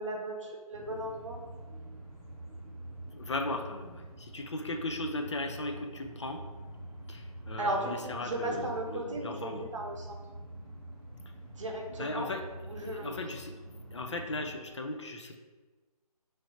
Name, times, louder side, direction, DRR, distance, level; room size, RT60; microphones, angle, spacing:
voice 1, 0.0-1.4 7.6-10.2 11.6-12.3 12.7-13.2, right 1 dB, 55° right, 1 dB, 0.7 m, -36 dB
sound 1, 0.7-14.5, right 1 dB, 10° right, 0.7 m, -46 dB
voice 2, 3.1-6.4 7.1-9.6 12.0-12.5 12.7-13.5 13.9-15.4, left 2 dB, 50° left, 4 dB, 0.4 m, -37 dB
3.2 x 2.5 x 4.1 m, 1.3 s
hypercardioid pair, 170°, 20 cm